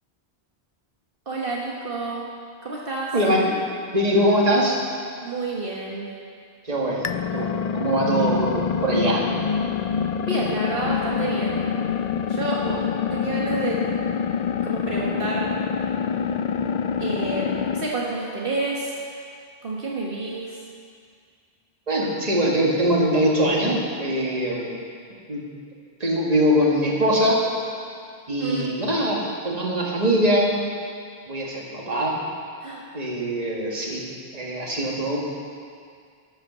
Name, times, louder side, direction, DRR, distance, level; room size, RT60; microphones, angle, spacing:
voice 1, 1.2-2.2 2.6-3.1 5.2-6.1 10.3-11.7 12.3-12.7 13.1-13.9 14.6-15.5 17.0-19.0 19.6-20.6 28.4-28.7 32.6-32.8, right 2 dB, 65° right, -4 dB, 1.6 m, -29 dB
voice 2, 3.1-3.5 3.9-4.8 6.6-9.2 12.6-12.8 21.9-24.7 25.3-25.4 26.0-27.4 28.3-30.6 31.3-32.1 32.9-34.1 34.3-35.2, equal, 40° right, -3 dB, 1.9 m, -22 dB
sound 1, 7.0-17.9, left 6 dB, 55° left, 0.5 m, -26 dB
12.5 x 8.9 x 6.8 m, 2.2 s
omnidirectional pair, 1.0 m